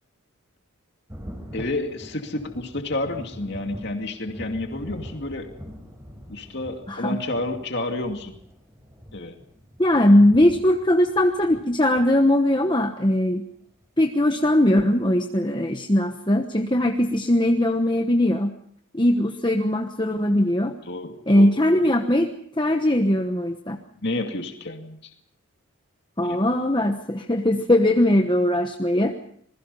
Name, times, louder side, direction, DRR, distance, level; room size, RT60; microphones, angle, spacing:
Thunder, 1.1-12.5 13.8-13.9 14.4-14.5, equal, 15° right, 4.6 m, -43 dB
voice 1, 1.5-5.5 6.3-8.3 9.1-9.4 20.8-21.6 24.0-25.0 26.2-26.4, left 2 dB, 50° left, 4 dB, 2.4 m, -30 dB
voice 2, 9.8-13.4 14.0-18.5 18.9-20.7 21.3-22.3 22.6-23.8 26.2-29.1, left 1 dB, 20° left, 4 dB, 1.2 m, -20 dB
27.5 x 21.0 x 5.5 m, 0.65 s
head